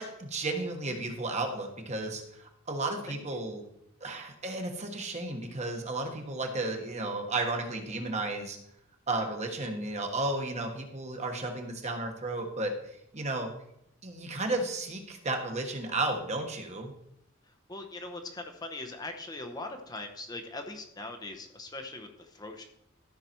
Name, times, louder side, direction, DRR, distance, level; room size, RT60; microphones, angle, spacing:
voice 1, 0.0-3.6 4.0-8.6 9.1-13.5 14.0-16.9, right 2 dB, 35° right, 3 dB, 1.4 m, -33 dB
voice 2, 3.1-3.4 17.4-22.6, left 2 dB, 20° left, 4 dB, 0.8 m, -41 dB
13.0 x 5.7 x 4.5 m, 0.77 s
head